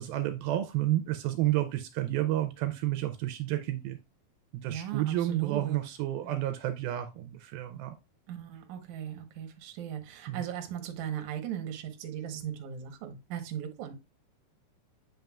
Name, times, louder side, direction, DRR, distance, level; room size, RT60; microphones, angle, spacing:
voice 1, 0.0-4.0 4.5-7.9 10.3-10.4, right 14 dB, 80° right, 2.3 m, -30 dB
voice 2, 4.6-5.8 6.2-6.4 8.3-13.9, right 9 dB, 65° right, 2.0 m, -38 dB
7.7 x 5.4 x 2.3 m
omnidirectional pair, 4.4 m